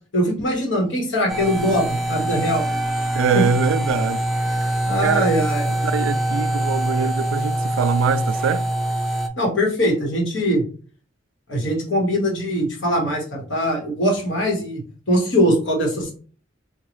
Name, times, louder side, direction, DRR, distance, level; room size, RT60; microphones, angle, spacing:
voice 1, 0.1-2.7 3.3-3.4 4.9-5.7 9.4-10.6 11.5-16.1, equal, 70° left, 1.3 m, -21 dB
sound 1, 1.3-9.3, right 1 dB, ahead, 0.3 m, -24 dB
voice 2, 3.1-4.2 5.0-5.3 5.8-8.7, right 5 dB, 80° right, 0.3 m, -23 dB
3.7 x 2.3 x 3.1 m
head